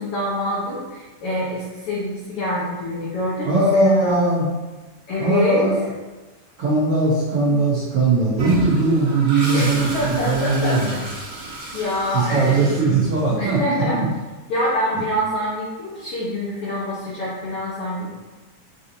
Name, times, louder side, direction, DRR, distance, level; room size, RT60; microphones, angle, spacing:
voice 1, 0.0-4.2 5.1-5.7 9.5-11.3 11.7-12.6 13.4-14.0 14.5-18.1, left 1 dB, 90° left, -7 dB, 1.2 m, -26 dB
voice 2, 3.4-4.5 5.2-5.8 6.6-11.0 12.1-13.6 13.9-14.0, right 2 dB, 85° right, -7 dB, 1.2 m, -19 dB
Toilet flush, 8.4-13.4, right 1 dB, 50° right, 0.8 m, -31 dB
6.0 x 2.8 x 2.6 m, 1.2 s
omnidirectional pair, 3.7 m